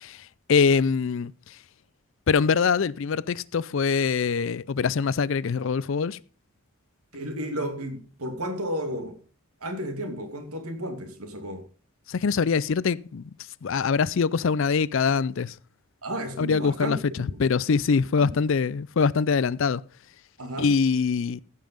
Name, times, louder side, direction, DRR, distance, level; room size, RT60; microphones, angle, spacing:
voice 1, 0.0-1.6 2.3-6.2 12.1-13.3 13.6-15.5 16.4-19.8 20.6-21.4, left 5 dB, 60° left, 0.4 m, -24 dB
voice 2, 7.1-9.2 9.6-11.6 16.0-17.4 18.2-18.3 20.4-20.7, equal, 80° right, 2.4 m, -33 dB
15.0 x 5.7 x 5.3 m
head